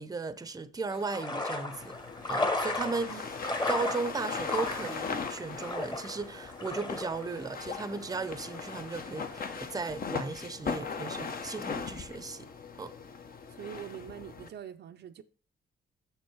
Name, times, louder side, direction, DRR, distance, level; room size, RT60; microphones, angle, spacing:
voice 1, 0.0-2.0 2.3-3.2 3.7-12.5 12.8-12.9, right 4 dB, 20° right, 0.7 m, -36 dB
sound 1, 0.9-9.6, left 2 dB, 20° left, 1.3 m, -36 dB
sound 2, 1.7-14.5, left 5 dB, 45° left, 1.0 m, -39 dB
voice 2, 13.5-15.2, right 10 dB, 60° right, 0.5 m, -44 dB
6.5 x 6.3 x 4.6 m
cardioid pair, 90°, 20 cm